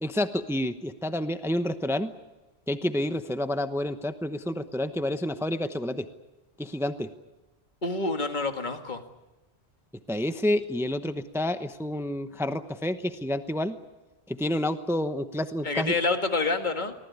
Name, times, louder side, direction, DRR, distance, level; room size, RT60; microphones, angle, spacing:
voice 1, 0.0-2.1 2.7-6.1 6.6-7.1 10.1-13.7 14.3-15.9, left 1 dB, 5° right, 9 dB, 0.9 m, -29 dB
voice 2, 7.8-9.0 15.6-16.9, left 3 dB, 45° left, 6 dB, 2.1 m, -27 dB
25.0 x 18.5 x 9.6 m, 1.1 s
omnidirectional pair, 1.1 m